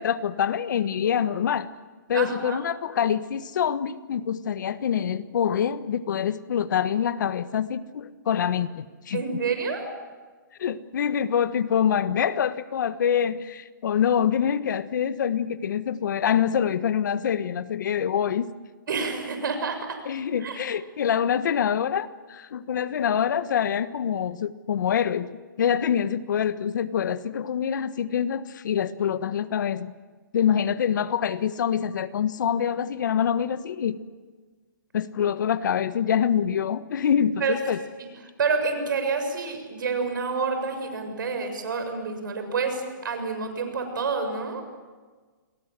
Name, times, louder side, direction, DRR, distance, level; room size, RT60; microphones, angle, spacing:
voice 1, 0.0-1.7 2.1-9.2 10.6-18.5 20.0-25.3 25.6-29.9 30.3-34.0 34.9-37.8, left 8 dB, 60° left, 13 dB, 1.4 m, -25 dB
voice 2, 2.1-2.6 9.1-9.9 18.9-20.0 20.4-20.6 37.4-37.6 38.0-38.1 38.4-44.6, right 4 dB, 70° right, 7 dB, 7.0 m, -28 dB
29.5 x 22.0 x 7.6 m, 1.4 s
hypercardioid pair, 145°, 11 cm